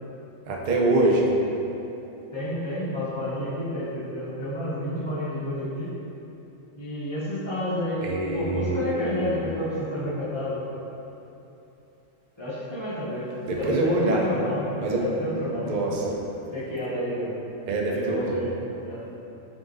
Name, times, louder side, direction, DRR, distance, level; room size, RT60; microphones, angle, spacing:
voice 1, 0.5-1.3 8.0-9.4 13.5-14.3 14.8-15.0 15.3-16.2 17.7-18.4, right 2 dB, 70° right, -2 dB, 0.4 m, -25 dB
voice 2, 2.3-5.9 6.8-8.1 8.3-10.6 12.4-13.3 13.5-14.7 15.0-15.7 16.5-17.4 17.9-18.5 18.9-19.0, left 1 dB, 25° left, -13 dB, 0.8 m, -30 dB
4.8 x 3.7 x 2.6 m, 3.0 s
omnidirectional pair, 1.4 m